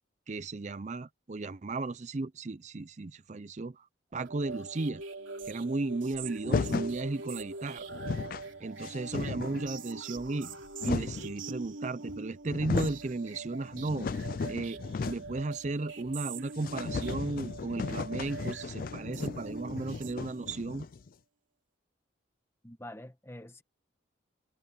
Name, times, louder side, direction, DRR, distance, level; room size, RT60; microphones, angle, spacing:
voice 1, 0.3-3.9 4.1-5.0 5.5-7.9 8.6-10.5 10.8-14.1 14.5-20.9, right 3 dB, 35° right, 0.5 m, -35 dB
sound 1, 4.3-20.7, right 3 dB, 80° right, 3.2 m, -43 dB
sound 2, 6.4-7.0 7.6-7.7 7.9-8.5 8.8-9.7 10.4-11.3 12.1-12.2 12.4-13.1 13.5-15.4 15.7-15.8 16.1-16.2 16.6-21.1, left 4 dB, 45° left, 0.3 m, -35 dB
voice 2, 22.6-23.6, left 1 dB, 15° left, 1.1 m, -46 dB
head